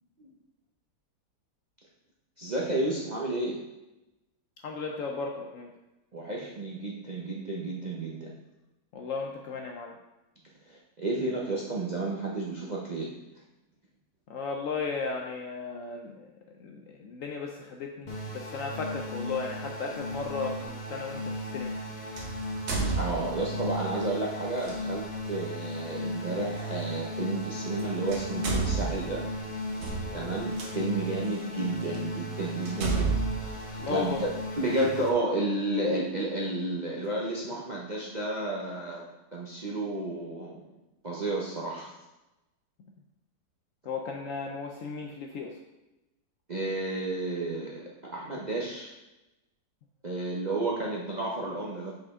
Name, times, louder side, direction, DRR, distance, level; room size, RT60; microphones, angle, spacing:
voice 1, 2.4-3.6 6.1-8.3 10.6-13.1 23.0-29.3 30.1-34.3 34.6-40.7 41.0-41.9 46.5-48.9 50.0-51.9, right 2 dB, 45° right, -4 dB, 0.6 m, -32 dB
voice 2, 4.6-5.7 8.9-10.0 14.3-16.3 16.6-21.8 30.1-30.4 33.8-34.2 43.9-45.6, left 4 dB, 70° left, 1 dB, 0.8 m, -35 dB
sound 1, 18.1-35.1, left 1 dB, 30° left, 1.2 m, -36 dB
sound 2, 20.1-20.2 22.2-23.6 24.6-24.8 26.6-26.7 27.7-27.8 28.1-30.7 31.4-31.5 31.9-32.0 32.7-34.4, right 4 dB, 65° right, 1.5 m, -31 dB
6.4 x 5.0 x 3.6 m, 0.98 s
omnidirectional pair, 1.8 m